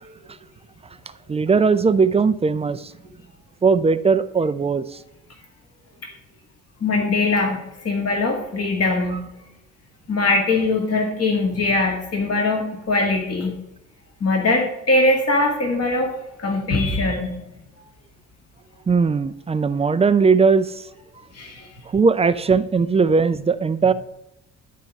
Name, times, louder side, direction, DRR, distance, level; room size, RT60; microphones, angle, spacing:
voice 1, 1.3-2.8 3.6-4.8 18.9-20.7 21.9-23.9, right 5 dB, 15° right, 13 dB, 0.4 m, -18 dB
voice 2, 6.8-9.3 10.1-13.5 14.2-16.1 16.4-17.4 21.3-21.7, left 2 dB, 40° left, 1 dB, 2.1 m, -21 dB
10.5 x 4.6 x 5.3 m, 0.88 s
hypercardioid pair, 50°, 39 cm